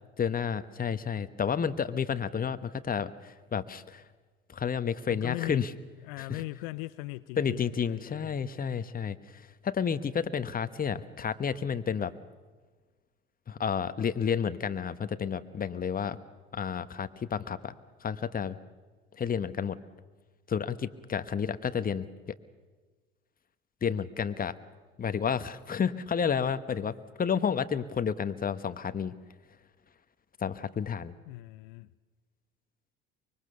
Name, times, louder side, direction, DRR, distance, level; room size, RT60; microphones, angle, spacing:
voice 1, 0.2-4.0 4.5-5.7 6.2-6.4 7.4-12.1 13.5-16.2 16.5-17.7 18.0-18.6 19.2-19.8 20.5-22.1 23.8-24.6 25.0-29.1 30.4-31.1, left 7 dB, 25° left, 12 dB, 1.2 m, -31 dB
voice 2, 5.1-5.6 6.0-8.4 8.7-8.9 31.3-31.9, left 21 dB, 70° left, 14 dB, 0.7 m, -39 dB
24.5 x 22.0 x 6.8 m, 1.4 s
hypercardioid pair, 65°, 31 cm